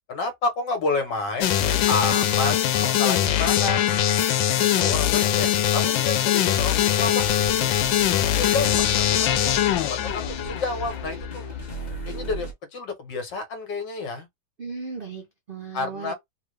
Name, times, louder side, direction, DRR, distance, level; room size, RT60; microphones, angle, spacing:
voice 1, 0.1-3.9 4.6-7.3 7.6-7.7 8.3-11.4 12.1-14.3 15.7-16.1, left 3 dB, 70° left, 1.8 m, -30 dB
sound 1, 1.4-11.0, left 11 dB, 90° left, 1.4 m, -22 dB
sound 2, 7.2-12.5, left 3 dB, 25° left, 1.1 m, -35 dB
voice 2, 14.6-16.1, right 4 dB, 80° right, 0.5 m, -36 dB
3.5 x 2.4 x 3.2 m
omnidirectional pair, 2.0 m